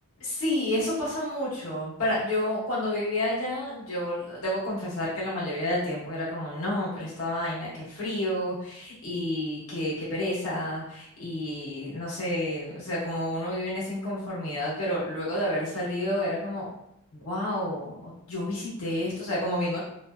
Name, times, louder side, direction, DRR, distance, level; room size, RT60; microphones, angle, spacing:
voice 1, 0.2-16.7 17.2-19.8, left 1 dB, 80° left, -7 dB, 1.0 m, -30 dB
2.6 x 2.1 x 2.3 m, 0.77 s
head